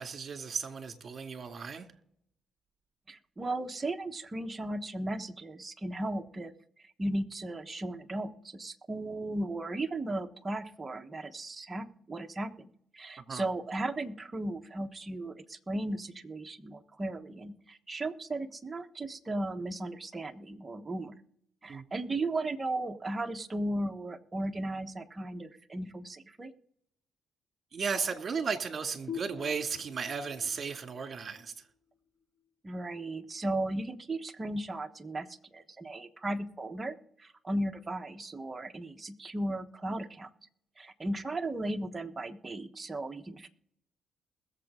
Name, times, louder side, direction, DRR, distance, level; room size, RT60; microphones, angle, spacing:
voice 1, 0.0-1.9 13.2-13.4 21.7-21.9 27.7-31.5, right 5 dB, 45° right, 2.3 m, -35 dB
voice 2, 3.1-6.5 7.0-21.1 21.6-26.5 32.6-40.3 40.8-43.5, right 1 dB, 25° right, 1.2 m, -36 dB
sound 1, 29.1-32.5, left 8 dB, 30° left, 2.1 m, -46 dB
21.5 x 7.4 x 3.7 m
cardioid pair, 90°, 0 cm